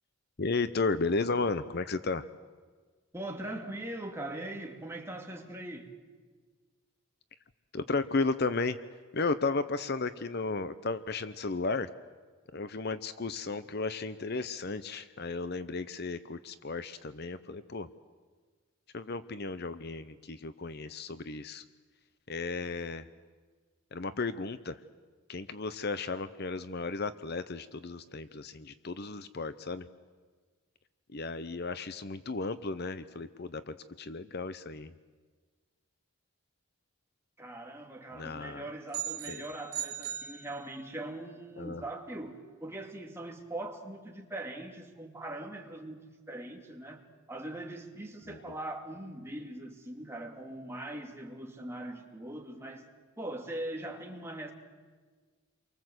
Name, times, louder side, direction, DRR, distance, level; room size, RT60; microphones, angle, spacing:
voice 1, 0.4-2.3 7.7-8.8 9.1-11.9 12.5-17.9 18.9-21.6 22.3-23.1 23.9-24.8 25.3-29.9 31.1-34.9 38.1-38.7 39.3-39.4 41.6-41.8 48.3-48.6, left 3 dB, 45° left, 0.8 m, -34 dB
voice 2, 3.1-5.9 37.4-47.0 47.3-52.9 53.2-54.5, right 1 dB, 10° right, 2.5 m, -41 dB
sound 1, 38.9-41.1, right 11 dB, 80° right, 2.4 m, -39 dB
29.5 x 24.0 x 8.0 m
head